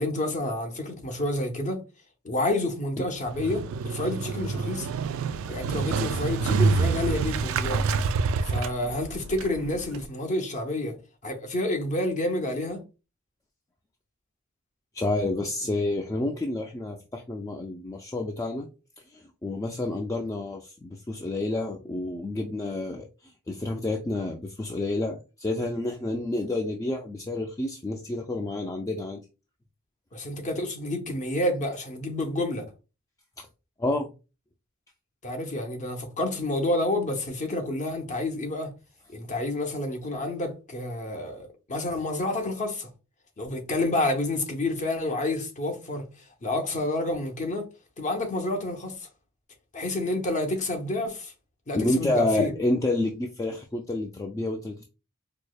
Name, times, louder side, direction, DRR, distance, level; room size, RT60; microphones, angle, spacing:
voice 1, 0.0-1.8 2.2-4.9 5.5-7.8 8.4-11.0 11.2-12.8 30.1-32.6 35.2-38.7 39.1-42.9 43.4-46.1 46.4-47.7 48.0-49.1 49.7-51.3 51.7-52.5, left 1 dB, 35° left, 0.7 m, -29 dB
Motorcycle, 3.3-10.1, right 4 dB, 75° right, 0.3 m, -27 dB
voice 2, 14.9-18.7 19.1-23.1 23.5-29.2 33.4-33.5 33.8-34.1 51.7-54.8, left 2 dB, 15° left, 0.3 m, -29 dB
4.7 x 2.0 x 2.3 m
head